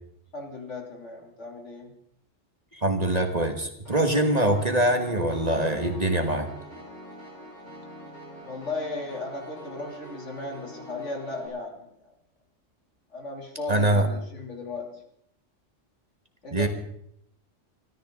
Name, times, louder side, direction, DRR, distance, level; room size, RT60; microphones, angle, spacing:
voice 1, 0.3-1.9 8.4-11.9 13.1-15.0 16.4-16.7, left 3 dB, 70° left, 1 dB, 3.4 m, -36 dB
voice 2, 2.7-6.5 13.7-14.1 16.5-16.7, right 1 dB, 30° right, 5 dB, 1.7 m, -23 dB
Piano, 3.8-11.5, right 1 dB, 35° left, 6.5 m, -44 dB
24.5 x 13.5 x 3.8 m, 0.72 s
omnidirectional pair, 1.3 m